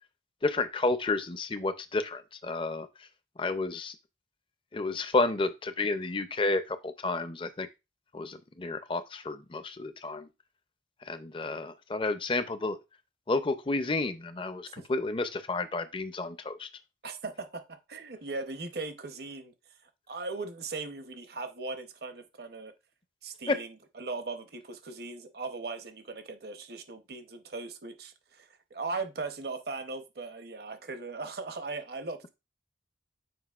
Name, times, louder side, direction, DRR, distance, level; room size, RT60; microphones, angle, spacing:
voice 1, 0.4-2.9 3.4-3.9 4.7-7.7 8.1-10.3 11.1-12.8 13.3-16.7 23.5-23.6, left 3 dB, 25° left, 0.5 m, -31 dB
voice 2, 17.0-19.5 20.1-22.7 23.2-32.3, right 3 dB, 55° right, 0.8 m, -39 dB
7.9 x 4.9 x 2.4 m
head